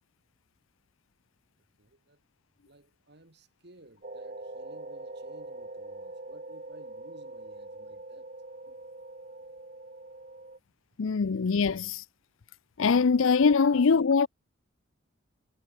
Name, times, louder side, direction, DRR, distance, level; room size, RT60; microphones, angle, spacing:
voice 1, 1.8-2.2 2.6-8.3, right 1 dB, 55° right, 2.7 m, -57 dB
sound 1, 4.0-10.6, right 2 dB, 40° right, 1.9 m, -43 dB
voice 2, 11.0-12.0 12.8-14.3, left 5 dB, 75° left, 0.5 m, -23 dB
head